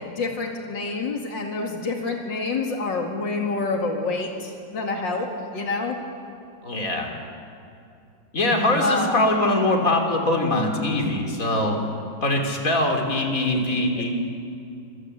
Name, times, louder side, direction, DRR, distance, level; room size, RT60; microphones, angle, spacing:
voice 1, 0.0-6.0 8.8-9.2 14.0-14.1, left 3 dB, 85° left, 1 dB, 2.9 m, -27 dB
voice 2, 6.6-7.1 8.3-11.8 12.2-14.1, left 1 dB, 45° left, 2 dB, 3.9 m, -22 dB
26.5 x 26.0 x 8.2 m, 2.6 s
omnidirectional pair, 2.0 m